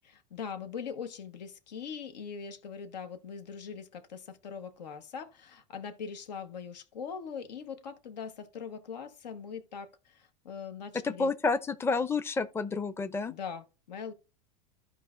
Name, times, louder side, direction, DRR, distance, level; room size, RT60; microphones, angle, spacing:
voice 1, 0.0-11.3 13.3-14.1, left 6 dB, 85° left, 1.2 m, -41 dB
voice 2, 11.0-13.3, left 4 dB, 10° left, 0.6 m, -29 dB
14.0 x 4.8 x 2.5 m
hypercardioid pair, 95°, 21 cm